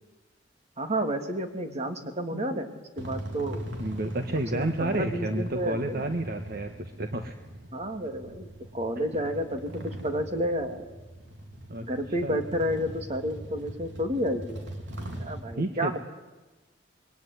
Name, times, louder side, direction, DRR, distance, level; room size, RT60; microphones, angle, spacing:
voice 1, 0.8-2.7 3.0-3.7 4.3-6.1 7.7-8.5 8.7-9.7 10.0-10.9 11.8-14.6 15.2-16.0, equal, 35° right, 5 dB, 3.1 m, -30 dB
sound 1, 3.0-15.4, equal, 75° right, 3.9 m, -40 dB
voice 2, 3.8-7.3 11.7-11.9 12.2-12.4 15.6-16.0, right 1 dB, 55° right, 6 dB, 1.5 m, -31 dB
27.0 x 22.0 x 9.8 m, 1.1 s
head